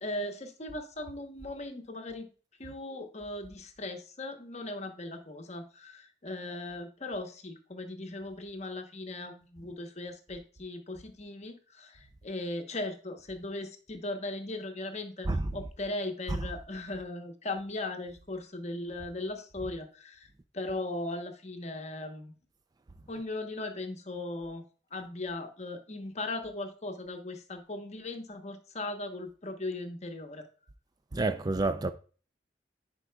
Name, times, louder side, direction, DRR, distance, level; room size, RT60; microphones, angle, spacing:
voice 1, 0.0-2.3 2.6-20.3 20.5-22.3 23.1-24.6 24.9-30.5, left 2 dB, 40° left, 1.0 m, -38 dB
voice 2, 31.1-31.9, right 2 dB, 20° right, 0.3 m, -28 dB
9.8 x 4.7 x 2.2 m
head